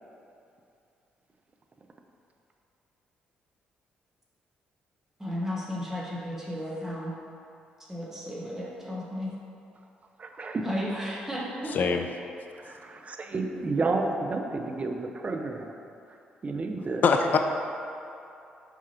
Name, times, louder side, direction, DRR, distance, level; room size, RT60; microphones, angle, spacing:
voice 1, 5.2-7.1 7.9-9.3 10.6-11.8, equal, 10° right, -6 dB, 1.4 m, -34 dB
voice 2, 10.2-10.7 12.5-15.8 16.1-16.2 16.4-17.0, right 3 dB, 35° right, 4 dB, 0.5 m, -31 dB
voice 3, 11.7-12.1 17.0-17.4, left 5 dB, 45° left, 5 dB, 0.4 m, -22 dB
6.8 x 4.7 x 2.9 m, 2.7 s
figure-of-eight pair, 40°, 4 cm